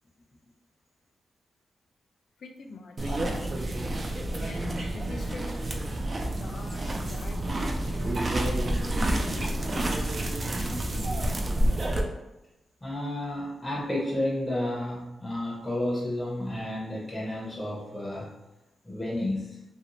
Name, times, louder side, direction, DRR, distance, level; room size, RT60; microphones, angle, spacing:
voice 1, 2.4-3.2 4.4-10.2 10.7-11.7, left 2 dB, 70° left, 4 dB, 0.3 m, -44 dB
sound 1, 3.0-12.0, right 1 dB, 35° right, 0.3 m, -29 dB
voice 2, 12.8-18.3 18.8-19.6, left 1 dB, 15° left, -5 dB, 0.6 m, -31 dB
2.6 x 2.0 x 2.8 m, 0.96 s
wide cardioid pair, 105°, 0 cm